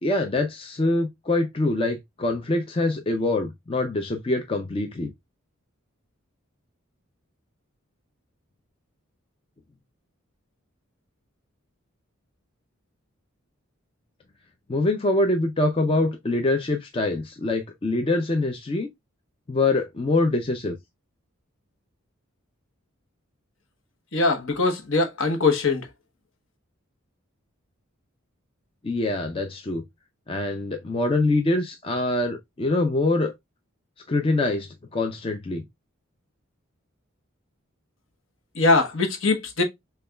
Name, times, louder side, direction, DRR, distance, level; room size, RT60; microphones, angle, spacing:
voice 1, 0.0-5.1 14.7-18.9 19.5-20.8 28.8-29.8 30.3-33.3 34.1-35.6, left 2 dB, 25° left, 0.4 m, -24 dB
voice 2, 24.1-25.9 38.6-39.6, left 3 dB, 65° left, 1.0 m, -22 dB
6.5 x 2.3 x 2.2 m
head